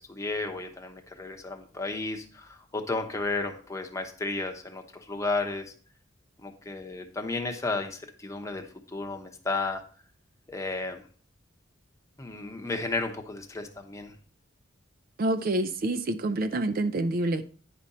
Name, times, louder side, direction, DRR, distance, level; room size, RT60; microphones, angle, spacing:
voice 1, 0.1-5.7 6.4-9.8 10.5-11.0 12.2-14.1, left 3 dB, 15° left, 0.9 m, -33 dB
voice 2, 15.2-17.4, right 2 dB, 45° right, 0.4 m, -27 dB
9.7 x 5.1 x 4.2 m
head